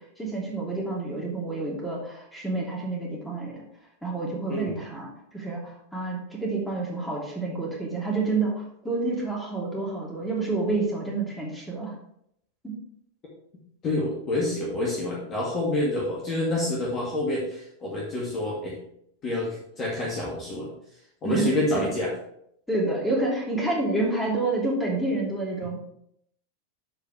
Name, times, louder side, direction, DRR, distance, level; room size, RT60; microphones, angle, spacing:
voice 1, 0.2-3.6 4.0-5.1 5.3-11.9 12.6-12.7 21.2-21.9 22.7-25.8, right 2 dB, 5° left, -3 dB, 2.9 m, -28 dB
voice 2, 13.8-18.8 19.2-20.7 21.2-22.1, left 1 dB, 30° left, -4 dB, 2.1 m, -28 dB
12.5 x 4.9 x 3.4 m, 0.72 s
figure-of-eight pair, 90°, 0 cm